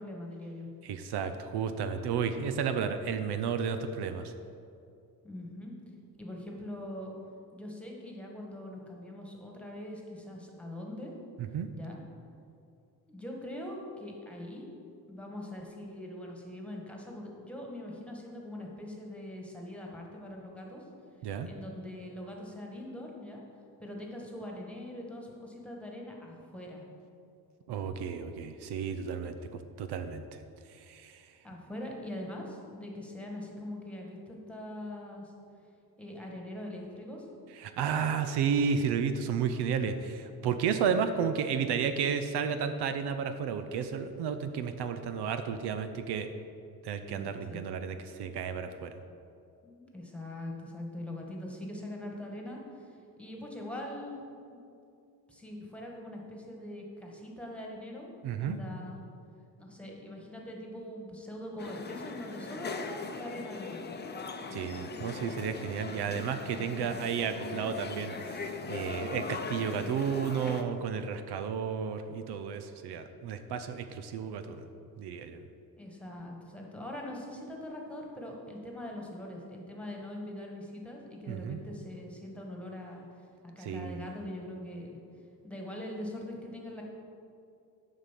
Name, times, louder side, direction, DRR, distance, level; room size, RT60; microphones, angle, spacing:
voice 1, 0.0-0.7 5.2-5.7 6.2-7.1 7.5-11.1 11.7-12.0 13.1-14.7 15.1-20.8 21.4-23.4 23.8-26.8 31.4-35.3 36.0-37.3 47.1-47.6 49.6-54.2 54.5-54.6 55.3-58.1 58.4-59.0 59.6-63.9 75.8-83.0 83.4-85.0 85.4-86.8, left 1 dB, 5° left, -1 dB, 1.6 m, -42 dB
voice 2, 0.8-4.3 11.4-11.7 21.2-21.5 27.7-29.4 29.8-30.2 30.9-31.2 37.6-46.3 46.8-48.9 58.2-58.6 64.5-74.7 75.0-75.4 81.3-81.6 83.6-84.0, right 6 dB, 80° right, 9 dB, 0.7 m, -32 dB
sound 1, 61.6-70.6, left 4 dB, 25° left, 0.6 m, -40 dB
7.3 x 5.4 x 7.4 m, 2.5 s
cardioid pair, 105°, 39 cm